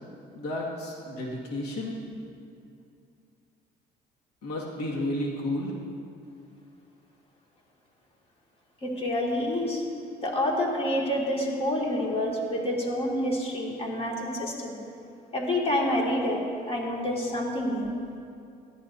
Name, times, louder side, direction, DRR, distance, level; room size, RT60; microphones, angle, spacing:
voice 1, 0.3-1.9 4.4-5.7, left 1 dB, 85° left, -3 dB, 2.0 m, -32 dB
voice 2, 8.8-9.8 10.2-14.8 15.3-17.9, left 1 dB, 35° left, -2 dB, 2.3 m, -28 dB
17.0 x 13.0 x 2.7 m, 2.5 s
cardioid pair, 110°, 17 cm